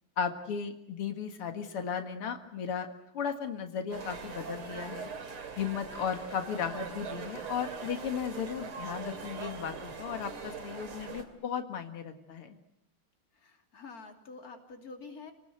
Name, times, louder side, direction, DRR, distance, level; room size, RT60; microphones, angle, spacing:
voice 1, 0.2-2.9 3.1-5.1 5.6-12.6, left 7 dB, 90° left, 6 dB, 2.7 m, -35 dB
sound 1, 3.9-11.2, right 5 dB, 80° right, 3.6 m, -41 dB
voice 2, 13.3-15.3, left 4 dB, 40° left, 4 dB, 3.2 m, -47 dB
29.5 x 19.5 x 8.0 m, 0.84 s
omnidirectional pair, 2.4 m